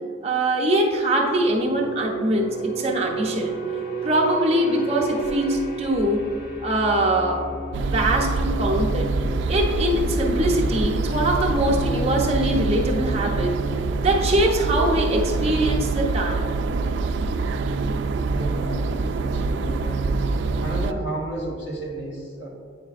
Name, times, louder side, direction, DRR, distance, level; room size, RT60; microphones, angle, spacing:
voice 1, 0.2-3.6 4.0-6.3 6.6-7.5 7.8-9.1 9.5-13.6 14.0-16.4, right 1 dB, 30° right, -1 dB, 0.8 m, -22 dB
sound 1, 1.3-15.9 16.2-16.5, right 3 dB, 45° left, 0.8 m, -34 dB
sound 2, 7.7-20.9, right 3 dB, 65° right, 0.3 m, -25 dB
voice 2, 18.3-20.2 20.6-22.5, right 2 dB, 75° left, -3 dB, 1.4 m, -33 dB
9.0 x 4.9 x 2.5 m, 2.1 s
head